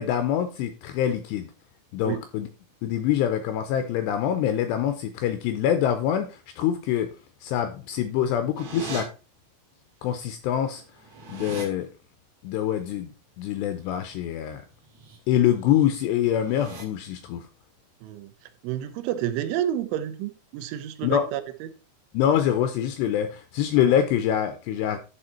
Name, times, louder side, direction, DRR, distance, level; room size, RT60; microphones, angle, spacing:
voice 1, 0.0-1.5 1.9-2.5 2.8-7.1 7.4-9.1 10.0-10.8 11.3-11.9 12.4-13.1 13.4-14.6 15.3-17.5 21.0-21.3 22.1-25.0, left 10 dB, 90° left, 2.5 m, -25 dB
sound 1, 8.5-9.0 10.2-10.3 10.6-11.7 14.8-15.2 15.5-15.8 16.3-16.8, right 4 dB, 55° right, 1.8 m, -39 dB
voice 2, 18.0-18.3 18.6-21.7, right 11 dB, 85° right, 3.2 m, -30 dB
11.5 x 4.4 x 4.2 m
omnidirectional pair, 5.5 m